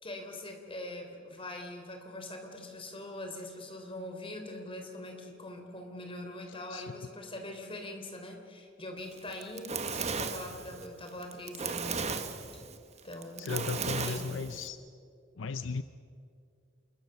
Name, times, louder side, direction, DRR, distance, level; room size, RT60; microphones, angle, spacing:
voice 1, 0.0-12.1 13.0-14.3, left 1 dB, 30° left, 4 dB, 3.6 m, -43 dB
voice 2, 6.7-7.1 13.4-14.8 15.4-15.8, left 4 dB, 70° left, 12 dB, 0.6 m, -36 dB
Fire, 9.2-14.7, right 5 dB, 35° right, 1.4 m, -36 dB
27.5 x 21.5 x 6.8 m, 2.3 s
head